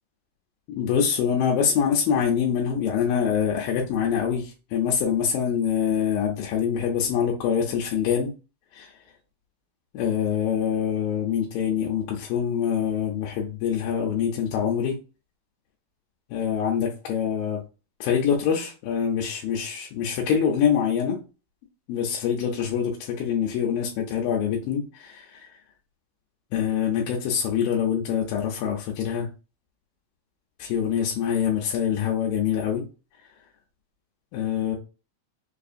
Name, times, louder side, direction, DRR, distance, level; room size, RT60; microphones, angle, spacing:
voice 1, 0.7-8.3 8.7-8.9 9.9-15.0 16.3-17.6 18.0-21.2 21.9-25.5 26.5-29.2 30.6-32.8 34.3-34.8, left 8 dB, 85° left, -2 dB, 2.5 m, -25 dB
5.8 x 2.4 x 2.5 m, 0.33 s
omnidirectional pair, 4.0 m